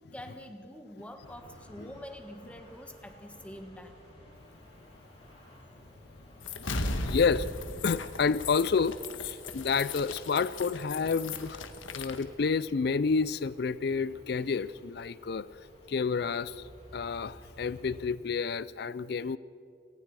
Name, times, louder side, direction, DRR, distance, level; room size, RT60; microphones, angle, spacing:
voice 1, 0.1-4.0, equal, 5° left, 5 dB, 1.4 m, -45 dB
sound 1, 1.2-18.0, left 1 dB, 30° left, 6.8 m, -55 dB
sound 2, 6.4-12.2, left 3 dB, 85° left, 1.4 m, -37 dB
voice 2, 6.6-7.5 7.8-11.6 11.9-15.5 15.9-16.6 16.9-19.4, left 5 dB, 55° left, 17 dB, 0.4 m, -29 dB
28.5 x 19.0 x 4.8 m, 2.7 s
head